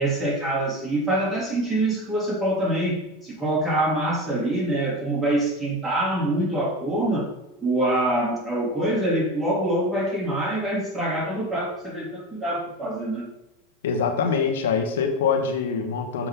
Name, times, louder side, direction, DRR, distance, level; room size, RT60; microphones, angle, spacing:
voice 1, 0.0-7.3 7.6-13.3, right 1 dB, 10° right, -4 dB, 2.9 m, -25 dB
voice 2, 13.8-16.3, left 5 dB, 80° left, 5 dB, 1.4 m, -24 dB
7.5 x 6.8 x 3.7 m, 0.94 s
supercardioid pair, 125°, 0 cm